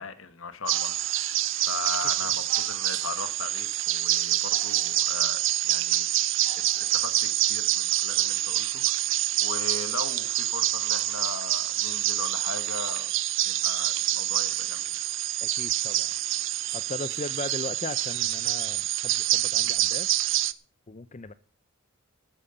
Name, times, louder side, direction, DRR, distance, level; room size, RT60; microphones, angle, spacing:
voice 1, 0.0-6.1 6.6-13.1 13.4-14.9, left 4 dB, 75° left, 1.4 m, -38 dB
sound 1, 0.7-20.5, right 14 dB, 65° right, 0.7 m, -27 dB
voice 2, 15.4-16.1 16.7-20.1 20.9-21.3, left 3 dB, 35° left, 0.6 m, -38 dB
12.5 x 9.1 x 6.9 m
head